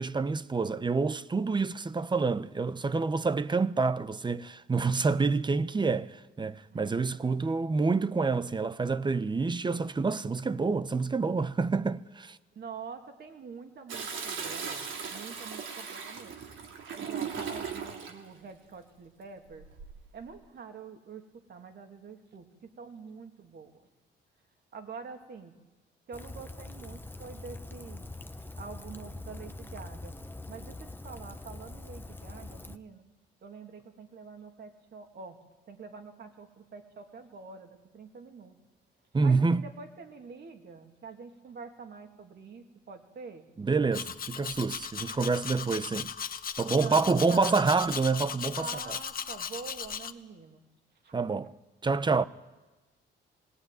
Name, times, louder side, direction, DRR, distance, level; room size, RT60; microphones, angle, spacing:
voice 1, 0.0-12.4 39.1-39.7 43.6-46.1 46.6-48.7 51.1-51.5 51.8-52.2, right 4 dB, 25° right, 0.8 m, -27 dB
voice 2, 12.5-16.4 17.0-19.7 20.1-23.8 24.7-25.5 26.1-28.0 28.6-30.2 30.5-33.0 33.4-35.4 35.7-38.6 39.2-43.5 46.7-47.6 48.6-50.6 51.0-51.1, right 5 dB, 55° right, 2.8 m, -46 dB
Toilet flush, 13.9-18.2 19.6-20.1, right 6 dB, 75° right, 3.1 m, -38 dB
Rain, 26.1-32.8, left 2 dB, 10° left, 1.1 m, -43 dB
Domestic sounds home sounds, 43.9-50.1, left 7 dB, 45° left, 1.1 m, -37 dB
19.0 x 18.5 x 9.4 m
cardioid pair, 90°, 20 cm